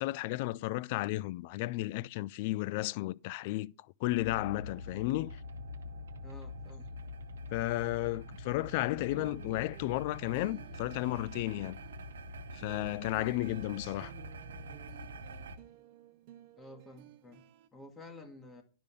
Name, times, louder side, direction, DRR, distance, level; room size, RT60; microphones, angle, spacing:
voice 1, 0.0-3.7 4.0-5.4 7.5-11.8 12.5-14.1, left 18 dB, 55° left, 0.3 m, -33 dB
sound 1, 4.1-15.6, left 1 dB, 85° right, 0.8 m, -45 dB
voice 2, 6.2-6.9 16.6-18.6, left 2 dB, 20° left, 1.5 m, -51 dB
sound 2, 9.0-17.7, right 13 dB, 50° right, 0.7 m, -54 dB
9.8 x 5.3 x 5.2 m
hypercardioid pair, 115°, 0 cm